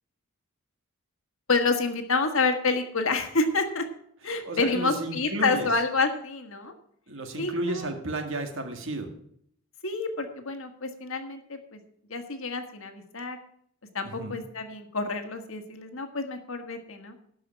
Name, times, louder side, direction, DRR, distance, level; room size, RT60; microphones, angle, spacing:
voice 1, 1.5-3.8 4.2-6.7 7.4-7.9 9.8-11.8 12.1-13.4 13.9-17.2, left 3 dB, 60° left, 6 dB, 1.6 m, -28 dB
voice 2, 4.3-5.7 7.1-9.1 14.0-14.4, right 2 dB, 60° right, 5 dB, 1.9 m, -33 dB
12.0 x 5.6 x 8.8 m, 0.68 s
head